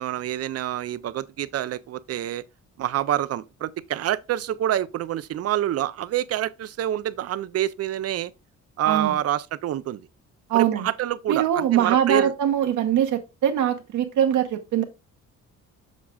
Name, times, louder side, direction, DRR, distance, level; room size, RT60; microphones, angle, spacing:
voice 1, 0.0-2.4 2.8-8.3 8.8-10.1 10.5-12.3, right 12 dB, 55° right, 0.5 m, -27 dB
voice 2, 10.5-10.9 11.3-14.8, right 10 dB, 75° right, 1.0 m, -22 dB
7.3 x 6.0 x 2.3 m
cardioid pair, 90°, 30 cm